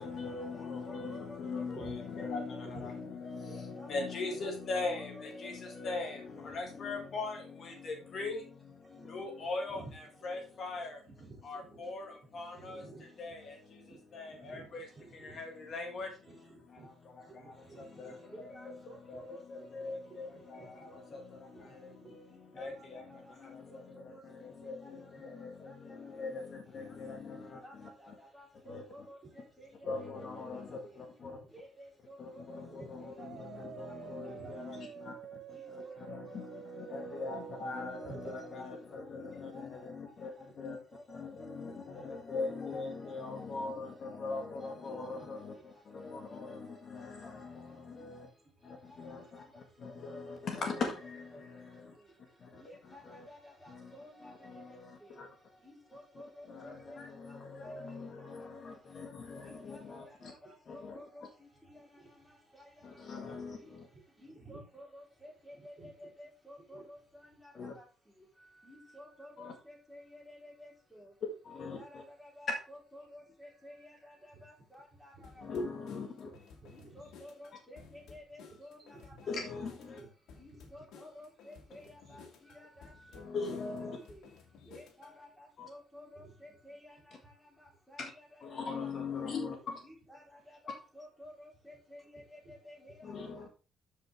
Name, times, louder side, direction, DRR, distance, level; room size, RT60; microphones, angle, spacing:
voice 1, 0.0-9.8 10.2-11.1 11.4-12.8 13.2-14.9 15.1-16.3 16.7-28.1 28.7-28.8 29.8-31.4 32.2-33.1 33.4-35.1 35.5-40.8 41.1-48.3 48.6-52.0 52.4-53.3 53.7-53.9 54.2-55.3 56.4-60.3 60.7-61.0 62.8-63.9 67.5-67.7 69.4-69.5 71.4-72.0 75.4-76.3 79.3-80.0 83.1-84.0 85.6-85.7 88.0-88.1 88.4-89.8 93.0-93.5, left 3 dB, 40° left, 1.7 m, -41 dB
voice 2, 0.6-2.6 3.5-3.9 4.7-5.9 18.3-21.2 22.3-22.8 23.4-24.2 24.6-24.9 25.6-25.7 27.4-30.6 31.5-33.1 33.4-33.5 33.8-34.0 34.3-34.5 35.5-36.6 37.6-37.7 38.4-38.5 39.3-39.6 40.4-41.2 42.3-42.7 44.6-44.7 46.3-46.6 48.9-49.0 50.1-50.4 52.6-55.1 55.6-57.0 57.3-57.7 58.2-58.3 59.4-59.8 60.2-62.0 62.5-62.6 64.2-67.5 68.6-71.1 71.5-75.4 76.7-79.3 79.6-79.7 80.4-84.2 84.7-87.1 87.6-88.7 89.8-93.1, equal, ahead, 3.7 m, -54 dB
voice 3, 8.8-10.3 11.1-11.9 12.2-12.3 12.5-13.4 13.8-15.7 16.2-16.9 17.2-18.5 20.1-21.2 21.5-22.1 22.5-22.8 29.8-30.2 30.5-30.8 31.2-31.5 32.7-32.9 33.3-34.0 34.3-34.5 36.5-36.7 37.0-37.1 37.5-37.6 38.0-38.3 41.6-42.0 45.2-45.3 47.3-47.4 49.4-49.5 49.9-50.0 50.4-50.5 53.0-53.1 57.4-57.7 60.3-60.5 61.9-62.1 62.8-63.6 63.9-64.6 65.5-66.1 66.7-66.8 74.3-74.5 75.1-75.2 76.2-77.1 78.8-79.2 80.0-80.1 80.7-80.8 86.1-86.3 92.2-92.5 92.9-93.0, right 3 dB, 35° right, 2.8 m, -55 dB
sound 1, 33.2-38.5, right 9 dB, 50° right, 0.4 m, -48 dB
sound 2, 75.2-85.2, left 5 dB, 85° left, 2.2 m, -56 dB
13.0 x 5.3 x 3.4 m
cardioid pair, 175°, 0 cm